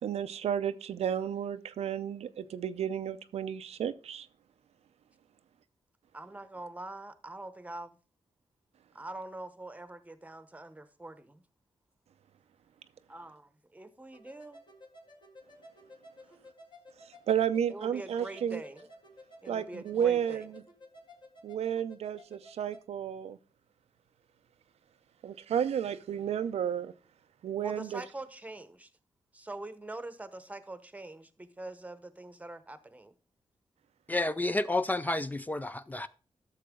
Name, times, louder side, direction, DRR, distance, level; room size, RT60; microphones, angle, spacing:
voice 1, 0.0-4.3 17.3-18.6 19.5-20.6 21.4-23.4 25.2-26.9 27.4-28.0, right 9 dB, 85° right, 0.5 m, -32 dB
voice 2, 6.1-8.0 8.9-11.4 13.1-14.6 17.7-18.8 19.4-20.5 27.6-28.9 29.3-33.1, right 2 dB, 15° right, 0.9 m, -44 dB
sound 1, 14.1-22.8, left 1 dB, 45° left, 1.9 m, -54 dB
voice 3, 34.1-36.1, left 2 dB, 15° left, 0.4 m, -30 dB
11.5 x 6.7 x 3.7 m
cardioid pair, 90°, 10 cm